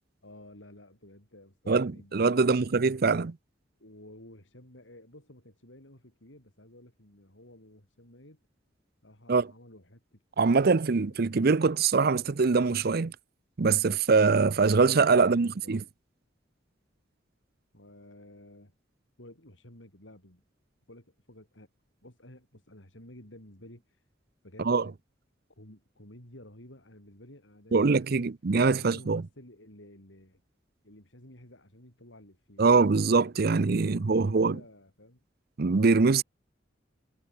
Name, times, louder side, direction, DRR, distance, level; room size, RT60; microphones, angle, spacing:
voice 1, 0.2-2.6 3.0-3.4 3.8-8.4 9.0-10.2 11.1-11.2 15.2-15.8 17.7-18.7 19.2-20.4 20.9-21.7 22.0-24.0 24.4-25.0 25.6-28.3 28.7-30.4 30.8-35.2, left 1 dB, 80° left, 7.7 m, -53 dB
voice 2, 1.7-3.3 9.3-9.5 10.4-13.1 13.6-15.8 24.6-24.9 27.7-29.2 32.6-34.6 35.6-36.2, right 4 dB, 55° right, 0.6 m, -23 dB
head